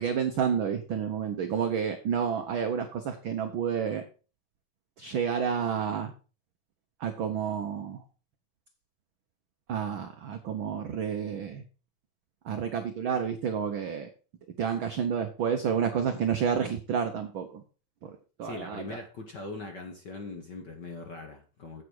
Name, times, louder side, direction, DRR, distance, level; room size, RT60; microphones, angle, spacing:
voice 1, 0.0-4.0 5.0-6.1 7.0-8.0 9.7-11.6 12.4-14.1 14.6-17.6 18.0-18.1 18.4-19.0, right 7 dB, 80° right, 7 dB, 1.1 m, -30 dB
voice 2, 18.4-21.8, left 3 dB, 55° left, 4 dB, 1.2 m, -41 dB
8.4 x 7.9 x 4.7 m, 0.36 s
omnidirectional pair, 3.4 m